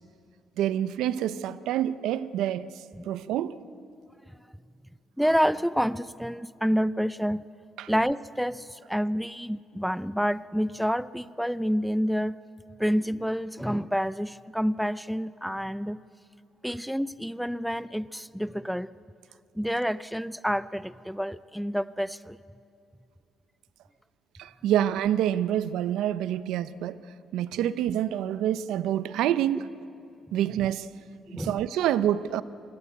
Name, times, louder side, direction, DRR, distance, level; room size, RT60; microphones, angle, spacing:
voice 1, 0.6-2.7 3.1-3.6 7.8-7.9 24.4-27.0 27.3-29.7 30.3-30.9 31.3-32.4, right 11 dB, 90° right, 0.7 m, -27 dB
voice 2, 5.2-7.4 7.9-12.3 12.8-16.0 16.6-18.9 19.6-22.4 31.3-31.6, equal, ahead, 0.5 m, -28 dB
27.0 x 21.0 x 8.0 m
cardioid pair, 90°, 0 cm